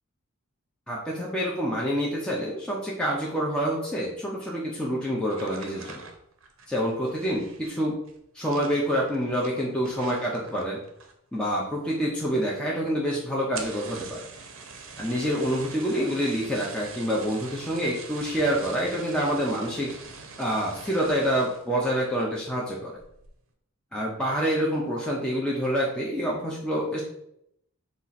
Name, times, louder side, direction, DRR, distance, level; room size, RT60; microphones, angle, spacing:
voice 1, 0.9-6.0 6.7-8.0 8.3-10.8 11.3-14.3 15.0-19.9 20.4-22.9 23.9-27.0, equal, 5° left, -4 dB, 0.5 m, -27 dB
sound 1, 5.3-11.4 11.7-12.2 12.5-12.6 12.8-12.9 13.4-21.7 22.2-22.5 23.0-23.3, right 4 dB, 65° right, 0.6 m, -44 dB
4.2 x 2.4 x 4.0 m, 0.75 s
head